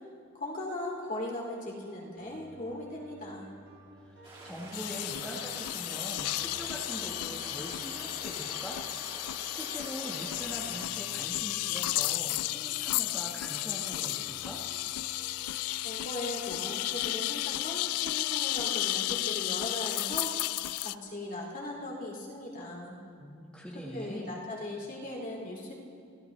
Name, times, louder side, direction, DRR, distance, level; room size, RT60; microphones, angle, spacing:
voice 1, 0.3-3.5 15.8-20.3 20.8-22.9 23.9-25.7, left 1 dB, 40° left, -2 dB, 2.8 m, -38 dB
sound 1, 2.2-18.2, right 2 dB, 55° right, 1.8 m, -53 dB
voice 2, 3.9-8.8 9.1-14.6 23.2-24.3, equal, 5° left, -5 dB, 1.4 m, -43 dB
sound 2, 4.2-10.9, right 2 dB, 25° right, 3.6 m, -46 dB
sound 3, 4.7-21.0, left 17 dB, 85° left, 0.3 m, -33 dB
26.5 x 14.5 x 3.3 m, 2.3 s
head